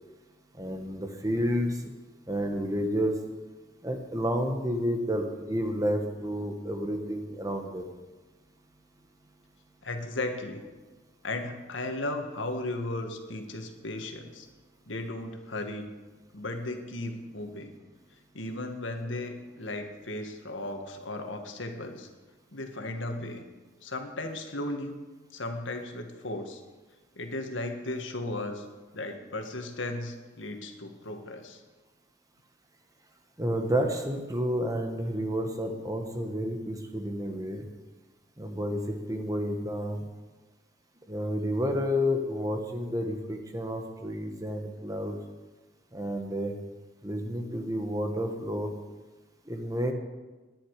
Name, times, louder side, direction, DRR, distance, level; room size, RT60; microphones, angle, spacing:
voice 1, 0.6-1.9 2.3-3.1 3.8-7.8 33.4-37.6 38.4-40.1 41.1-45.1 45.9-46.5 47.0-48.7 49.5-49.9, equal, 20° right, 4 dB, 1.4 m, -30 dB
voice 2, 9.8-10.6 11.2-14.5 14.9-15.9 16.3-17.7 18.3-22.1 22.5-23.4 23.8-25.0 25.3-26.6 27.2-28.7 28.9-31.6, left 2 dB, 80° left, 5 dB, 1.9 m, -35 dB
20.5 x 10.5 x 5.0 m, 1.2 s
head